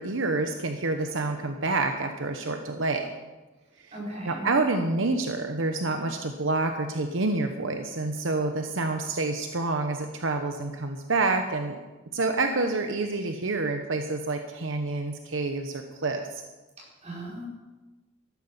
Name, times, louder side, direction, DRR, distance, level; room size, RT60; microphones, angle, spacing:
voice 1, 0.0-3.1 4.3-11.8 12.1-16.4, right 3 dB, 75° right, 5 dB, 1.0 m, -28 dB
voice 2, 3.9-4.5 16.8-17.5, right 1 dB, 35° right, -4 dB, 4.8 m, -38 dB
14.0 x 12.0 x 5.6 m, 1.2 s
head